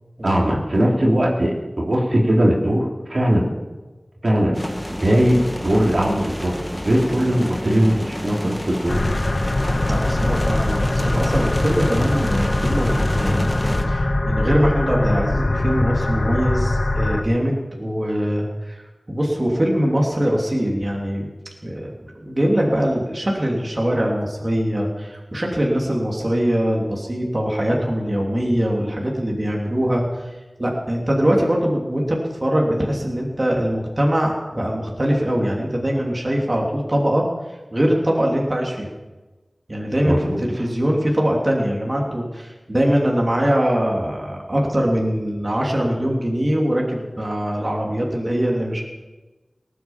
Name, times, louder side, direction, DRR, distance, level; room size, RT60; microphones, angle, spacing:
voice 1, 0.2-3.4 4.2-4.5 4.9-6.5 6.8-9.0 40.0-40.4, equal, 65° right, -3 dB, 3.2 m, -19 dB
sound 1, 4.5-13.8, equal, 10° left, 1.9 m, -29 dB
sound 2, 8.9-17.2, left 2 dB, 60° left, 0.9 m, -22 dB
voice 2, 9.9-13.5 13.9-18.8 19.1-21.3 21.6-30.3 30.6-37.2 37.7-38.9 39.7-48.8, equal, 40° right, -2 dB, 3.1 m, -22 dB
19.0 x 9.4 x 7.4 m, 1.2 s
wide cardioid pair, 50°, 0 cm